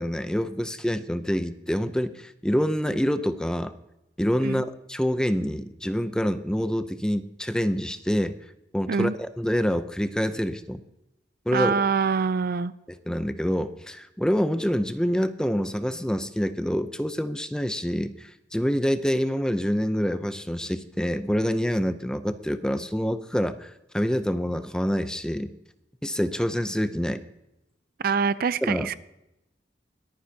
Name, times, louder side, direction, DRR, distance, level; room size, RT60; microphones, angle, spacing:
voice 1, 0.0-3.7 4.2-8.4 8.7-10.8 11.5-11.7 13.1-25.5 26.0-27.2 28.6-28.9, equal, 5° left, 0.6 m, -26 dB
voice 2, 11.5-12.7 28.0-29.0, right 5 dB, 55° right, 0.5 m, -25 dB
22.5 x 9.6 x 2.8 m
head